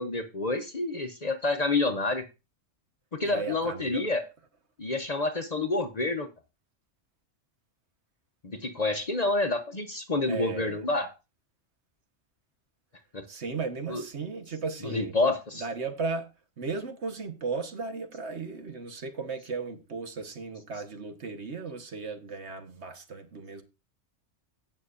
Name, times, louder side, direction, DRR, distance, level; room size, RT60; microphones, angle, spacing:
voice 1, 0.0-2.2 3.1-4.2 4.8-6.3 8.4-11.1 13.1-13.2 13.9-14.0 14.8-15.6, left 2 dB, 35° left, 0.8 m, -28 dB
voice 2, 3.2-4.1 10.3-10.8 13.3-15.1 15.5-16.3 16.6-23.6, right 4 dB, 65° right, 1.5 m, -35 dB
16.5 x 6.4 x 2.5 m
omnidirectional pair, 1.3 m